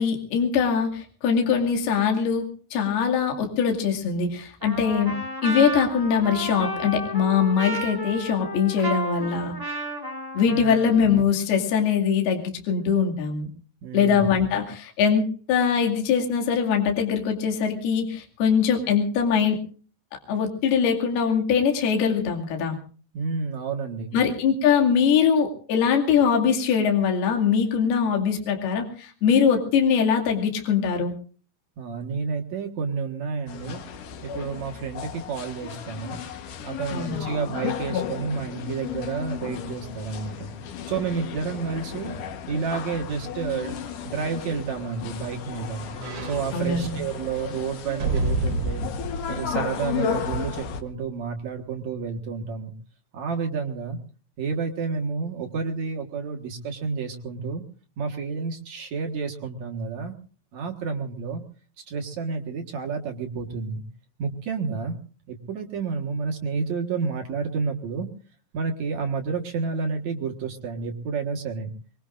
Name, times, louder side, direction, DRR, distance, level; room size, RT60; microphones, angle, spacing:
voice 1, 0.0-5.2 5.4-9.5 10.3-13.5 13.9-19.6 20.3-22.8 24.1-31.2 36.9-37.3 46.5-47.0, left 6 dB, 55° left, 1 dB, 4.0 m, -22 dB
Trumpet, 4.6-11.2, equal, 10° right, 1.3 m, -32 dB
voice 2, 10.4-10.7 13.8-14.3 23.1-24.2 31.8-33.8 34.2-36.2 36.6-40.5 40.9-42.2 42.5-43.7 44.0-45.9 46.2-48.8 49.3-52.7 53.1-54.0 54.4-57.6 58.0-60.1 60.5-61.4 61.8-63.8 64.2-65.0 65.3-68.1 68.5-71.7, right 5 dB, 60° right, 2 dB, 1.9 m, -30 dB
sound 1, 33.5-50.8, left 7 dB, 75° left, 1.9 m, -34 dB
sound 2, 44.3-50.6 51.1-51.2, right 3 dB, 35° right, 4.5 m, -32 dB
24.5 x 23.0 x 2.6 m, 0.40 s
omnidirectional pair, 5.7 m